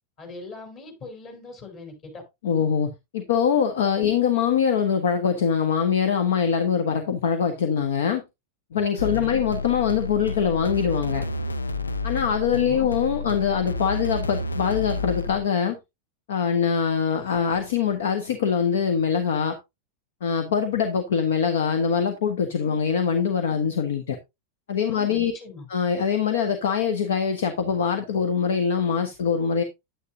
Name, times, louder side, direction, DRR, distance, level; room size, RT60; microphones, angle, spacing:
voice 1, 0.2-2.2 9.0-9.4 12.5-12.9 24.9-25.7, left 3 dB, 35° left, 5.0 m, -41 dB
voice 2, 2.4-8.2 8.7-11.2 12.0-15.8 16.3-19.6 20.2-24.2 24.7-25.3 25.7-29.6, left 7 dB, 60° left, 1.2 m, -23 dB
sound 1, 9.0-15.4, left 3 dB, 80° left, 0.6 m, -30 dB
10.5 x 9.5 x 2.7 m
figure-of-eight pair, 90°, 0 cm